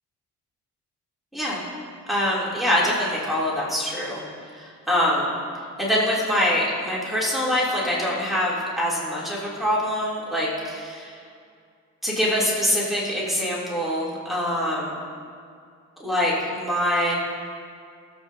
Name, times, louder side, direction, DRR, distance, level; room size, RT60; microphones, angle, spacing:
voice 1, 2.1-4.2 4.5-5.3 5.8-11.2 12.0-15.0 16.0-17.1, equal, ahead, -7 dB, 2.9 m, -24 dB
18.0 x 8.2 x 2.7 m, 2.3 s
cardioid pair, 90°, 30 cm